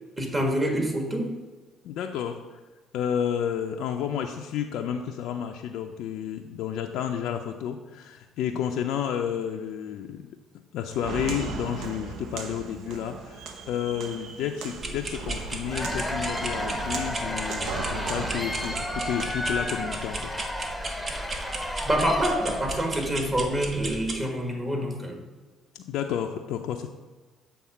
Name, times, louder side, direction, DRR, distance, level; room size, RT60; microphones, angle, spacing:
voice 1, 0.2-1.3 21.9-25.2, equal, 25° right, 3 dB, 1.8 m, -26 dB
voice 2, 1.8-2.6 2.9-10.2 10.7-20.3 25.7-26.9, left 9 dB, 70° left, 4 dB, 0.4 m, -31 dB
Walk footsteps, 10.9-19.7, right 5 dB, 65° right, 0.7 m, -37 dB
sound 1, 14.7-24.2, right 2 dB, 40° right, 1.0 m, -36 dB
Cheering / Applause / Crowd, 15.5-23.1, left 1 dB, 5° left, 0.9 m, -33 dB
7.1 x 3.5 x 6.1 m, 1.3 s
hypercardioid pair, 55°, 0 cm